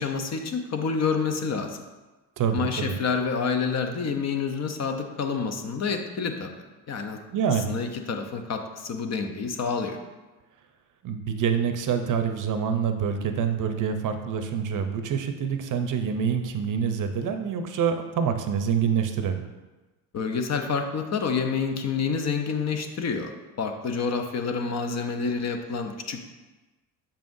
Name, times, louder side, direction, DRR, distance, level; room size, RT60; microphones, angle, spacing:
voice 1, 0.0-1.8 2.5-7.2 7.7-10.0 20.1-23.3 23.6-26.3, left 5 dB, 35° left, 6 dB, 0.7 m, -28 dB
voice 2, 2.4-2.9 7.3-7.7 11.0-19.5, right 7 dB, 40° right, 7 dB, 0.7 m, -26 dB
7.1 x 5.6 x 2.6 m, 1.2 s
supercardioid pair, 100°, 47 cm